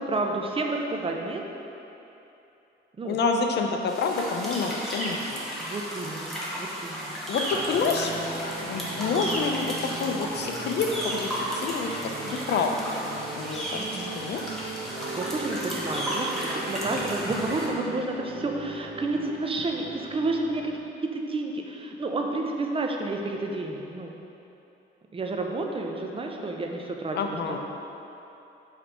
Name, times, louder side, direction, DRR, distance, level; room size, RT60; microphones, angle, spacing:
voice 1, 0.0-1.4 3.0-3.2 5.6-7.2 13.8-14.1 15.1-24.2 25.1-27.2 27.5-27.6, right 2 dB, 25° right, 2 dB, 0.6 m, -30 dB
voice 2, 3.0-5.5 7.3-8.1 8.6-11.9 12.2-13.0 13.3-14.4 27.1-27.6, left 4 dB, 60° left, 3 dB, 0.6 m, -28 dB
sound 1, 3.9-17.7, equal, ahead, 1.4 m, -33 dB
sound 2, 7.5-20.8, right 3 dB, 65° right, 0.9 m, -39 dB
5.7 x 3.3 x 5.4 m, 3.0 s
cardioid pair, 90°, 20 cm